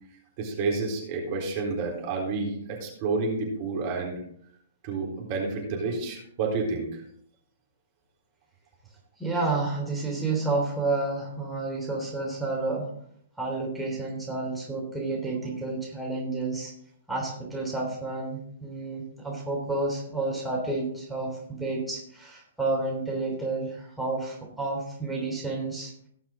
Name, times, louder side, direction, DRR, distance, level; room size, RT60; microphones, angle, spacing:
voice 1, 0.4-4.2 4.8-7.0, right 3 dB, 45° right, -1 dB, 3.9 m, -30 dB
voice 2, 9.2-12.9 13.4-16.7 17.1-25.9, right 3 dB, ahead, -4 dB, 3.4 m, -30 dB
18.0 x 6.1 x 3.9 m, 0.64 s
hypercardioid pair, 125°, 0 cm